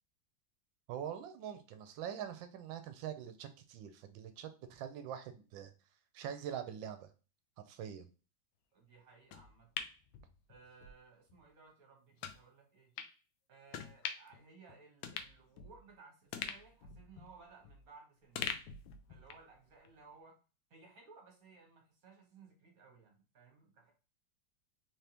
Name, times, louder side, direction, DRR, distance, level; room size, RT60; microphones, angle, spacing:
voice 1, 0.9-5.7 6.1-7.1 7.6-8.1, right 9 dB, 80° right, 9 dB, 1.3 m, -44 dB
voice 2, 8.7-9.7 10.5-12.9 13.5-18.5 19.1-20.4 20.7-23.9, right 4 dB, 50° right, 1 dB, 1.5 m, -60 dB
sound 1, 9.3-10.9 11.3-11.4 12.2-12.4 13.0-13.1 13.7-14.4 14.7-14.8 15.0-15.9 16.3-17.9 18.4-19.5 19.9-20.0, left 8 dB, 90° left, 1.3 m, -43 dB
3.8 x 3.4 x 2.8 m, 0.34 s
omnidirectional pair, 2.1 m